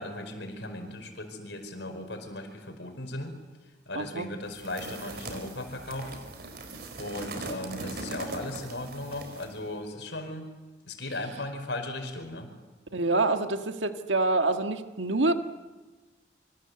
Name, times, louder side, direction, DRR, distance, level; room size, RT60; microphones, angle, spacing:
voice 1, 0.0-3.4 3.9-6.1 7.0-10.5 10.8-12.5, left 1 dB, 70° left, 6 dB, 5.0 m, -37 dB
voice 2, 3.9-4.3 12.9-15.3, right 2 dB, 80° right, 7 dB, 1.7 m, -26 dB
sound 1, 4.5-9.6, right 2 dB, 55° right, 4.3 m, -40 dB
27.5 x 25.0 x 8.1 m, 1.2 s
head